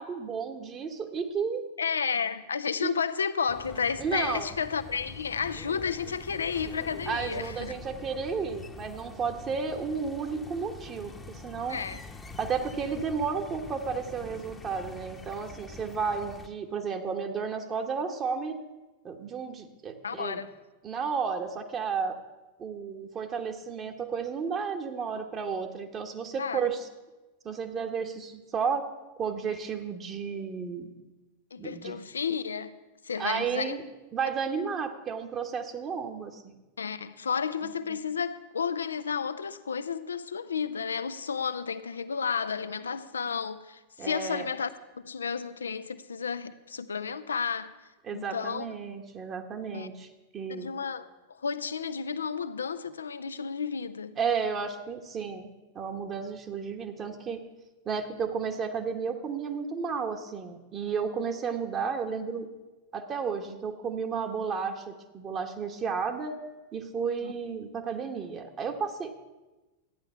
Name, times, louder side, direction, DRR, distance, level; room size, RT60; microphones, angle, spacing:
voice 1, 0.0-1.7 2.8-2.9 4.0-4.5 7.1-11.8 12.4-18.5 19.0-20.4 20.8-22.2 22.6-26.9 27.4-28.9 29.2-30.9 31.6-32.0 33.2-33.8 34.1-36.5 37.9-38.0 44.0-44.5 48.1-50.1 50.3-50.7 54.2-55.5 55.7-57.4 57.8-62.5 62.9-66.4 66.7-69.1, right 6 dB, 30° right, 1.3 m, -32 dB
voice 2, 1.8-7.7 11.7-12.0 20.0-20.5 26.4-26.6 31.5-32.7 33.0-33.8 36.8-44.7 45.0-47.7 48.1-48.7 49.7-49.9 50.5-54.1 67.2-67.3, left 6 dB, 70° left, 0.6 m, -32 dB
sound 1, 3.5-16.5, left 3 dB, 15° left, 1.0 m, -45 dB
13.5 x 9.9 x 5.6 m
figure-of-eight pair, 90°, 0 cm